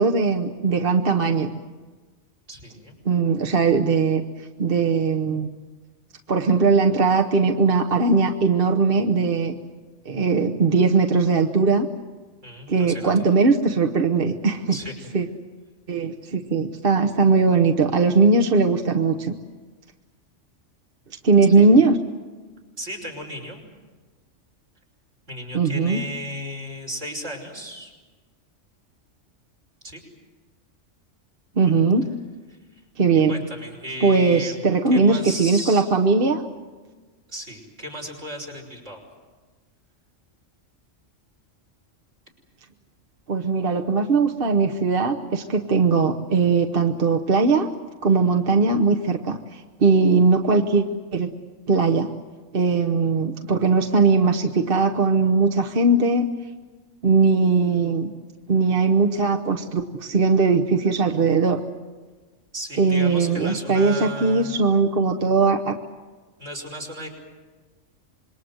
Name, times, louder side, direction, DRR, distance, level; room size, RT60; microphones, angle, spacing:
voice 1, 0.0-1.5 3.0-5.5 6.3-9.6 10.0-11.9 12.7-14.8 15.1-15.3 15.9-19.3 21.2-22.0 25.5-26.0 31.6-32.1 33.0-33.3 34.0-36.4 43.3-47.7 48.0-50.8 51.1-51.3 51.7-52.1 52.5-56.3 57.0-58.1 58.5-61.6 62.8-65.8, right 4 dB, 50° right, 6 dB, 1.2 m, -19 dB
voice 2, 2.5-2.9 12.4-13.1 14.7-14.9 21.6-21.7 22.8-23.6 25.3-27.9 29.8-30.1 32.5-32.8 33.3-35.9 37.3-39.0 62.5-64.5 66.4-67.1, equal, 70° right, -1 dB, 5.8 m, -35 dB
26.5 x 22.5 x 7.9 m, 1.3 s
omnidirectional pair, 1.3 m